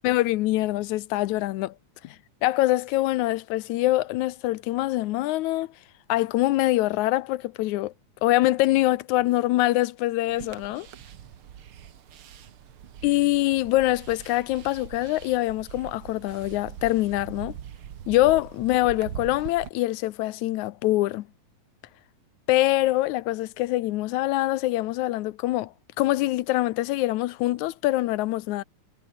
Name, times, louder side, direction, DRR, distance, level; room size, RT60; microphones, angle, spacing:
voice 1, 0.0-1.7 2.0-2.2 2.4-5.7 6.1-7.9 8.2-10.9 13.0-17.6 18.1-21.3 22.5-25.7 26.0-28.6, left 17 dB, 85° left, 2.1 m, -24 dB
sound 1, 10.3-19.7, right 10 dB, 55° right, 1.9 m, -42 dB
omnidirectional pair, 3.3 m